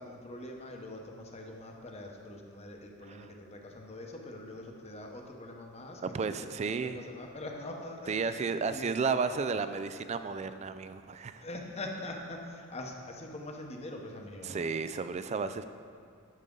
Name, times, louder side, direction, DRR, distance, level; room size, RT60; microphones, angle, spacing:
voice 1, 0.0-8.9 11.4-14.7, left 1 dB, 30° left, 2 dB, 0.9 m, -43 dB
voice 2, 6.0-7.0 8.1-11.4 14.4-15.6, right 5 dB, 30° right, 11 dB, 0.3 m, -33 dB
10.5 x 6.6 x 3.8 m, 2.3 s
head